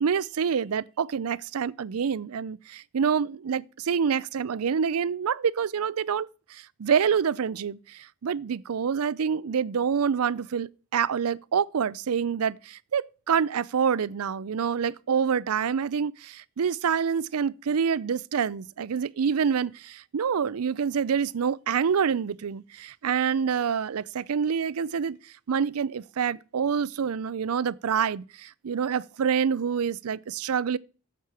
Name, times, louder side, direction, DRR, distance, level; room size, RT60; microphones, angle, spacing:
voice 1, 0.0-25.2 25.5-30.8, right 7 dB, 85° right, 0.5 m, -27 dB
10.0 x 7.4 x 4.8 m
head